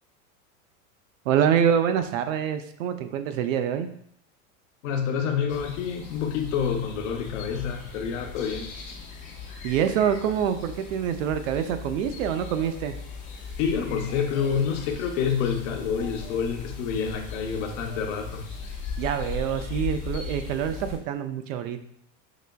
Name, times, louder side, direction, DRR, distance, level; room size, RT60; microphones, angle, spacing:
voice 1, 1.3-3.9 9.6-13.0 19.0-21.8, right 8 dB, 65° right, 9 dB, 0.5 m, -26 dB
voice 2, 4.8-8.7 13.6-18.5, left 7 dB, 60° left, 4 dB, 0.7 m, -28 dB
sound 1, 5.5-21.0, left 5 dB, 20° left, 0.4 m, -38 dB
4.9 x 3.3 x 2.2 m, 0.67 s
supercardioid pair, 160°, 43 cm